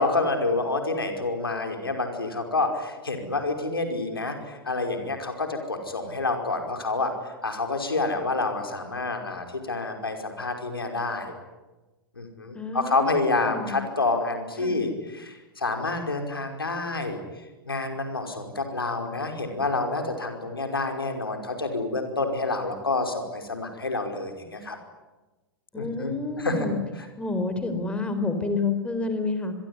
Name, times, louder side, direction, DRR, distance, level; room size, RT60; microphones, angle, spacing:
voice 1, 0.0-11.3 12.2-17.2 17.7-24.8 25.8-26.1 26.4-26.7, left 3 dB, 80° left, 5 dB, 5.3 m, -28 dB
voice 2, 12.5-13.8 14.6-14.9 25.7-26.8 27.2-29.5, left 3 dB, 10° left, 8 dB, 4.3 m, -29 dB
27.0 x 22.0 x 9.8 m, 1.2 s
figure-of-eight pair, 95°, 12 cm